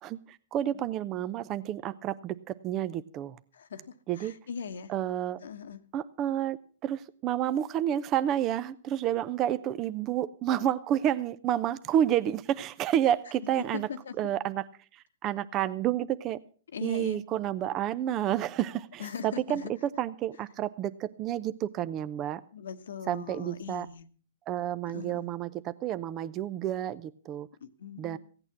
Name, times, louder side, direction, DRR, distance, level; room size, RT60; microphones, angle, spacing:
voice 1, 0.0-3.4 4.1-4.3 4.9-5.4 5.9-6.6 6.8-13.9 14.2-14.6 14.9-16.4 16.8-19.6 20.0-22.4 23.1-23.9 24.5-27.5 28.0-28.2, right 11 dB, 30° right, 0.6 m, -30 dB
voice 2, 3.5-4.9 5.4-5.8 13.6-14.1 16.7-17.2 19.0-19.7 22.5-24.1 24.9-25.3 27.6-28.2, left 7 dB, 80° left, 1.1 m, -40 dB
15.5 x 8.9 x 5.9 m
hypercardioid pair, 140°, 0 cm